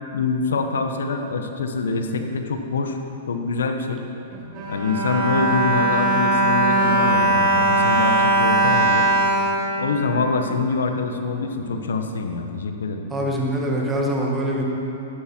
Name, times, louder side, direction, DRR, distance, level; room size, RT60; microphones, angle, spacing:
voice 1, 0.1-3.0 3.3-4.0 4.7-9.1 9.8-13.0, left 4 dB, 85° left, 5 dB, 1.3 m, -25 dB
Bowed string instrument, 4.3-10.6 11.2-11.3 11.6-11.8, right 1 dB, 35° right, 3.6 m, -20 dB
voice 2, 13.1-14.6, right 1 dB, 15° right, -2 dB, 2.1 m, -23 dB
13.5 x 12.0 x 4.6 m, 2.9 s
hypercardioid pair, 130°, 0 cm